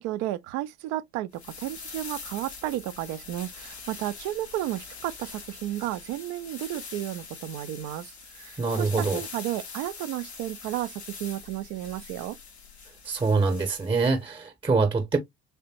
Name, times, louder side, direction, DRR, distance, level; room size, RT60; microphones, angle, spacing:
voice 1, 0.0-12.4, right 14 dB, 55° right, 0.5 m, -33 dB
sound 1, 1.3-14.2, left 5 dB, 85° left, 0.6 m, -43 dB
voice 2, 8.6-9.2 13.0-15.2, right 4 dB, 15° right, 0.9 m, -24 dB
3.4 x 3.2 x 2.8 m
figure-of-eight pair, 55°, 32 cm